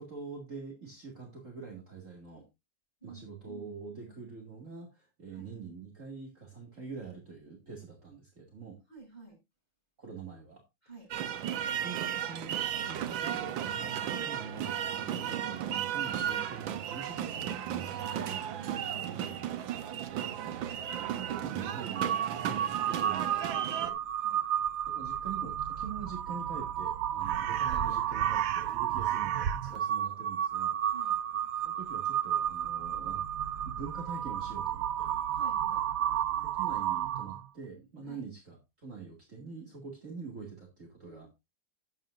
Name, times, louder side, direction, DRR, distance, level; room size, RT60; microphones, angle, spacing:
voice 1, 0.0-2.4 3.0-8.8 10.0-10.6 10.9-11.1 11.7-12.6 12.9-18.4 19.9-20.6 21.1-22.2 22.4-24.0 24.9-30.8 31.6-35.1 36.4-41.3, right 5 dB, 40° right, 1 dB, 2.4 m, -45 dB
voice 2, 3.0-4.2 5.3-5.4 8.9-9.4 10.8-11.1 14.3-14.4 17.9-19.6 24.2-24.4 24.9-25.0 28.6-29.0 30.9-31.1 35.3-35.9 38.1-38.2 41.0-41.3, right 4 dB, 20° left, -3 dB, 8.0 m, -52 dB
sound 1, 11.1-23.9, right 10 dB, 85° right, 1.7 m, -35 dB
Crow, 22.0-37.5, right 10 dB, 65° right, 0.9 m, -32 dB
11.5 x 9.0 x 2.5 m, 0.23 s
omnidirectional pair, 2.1 m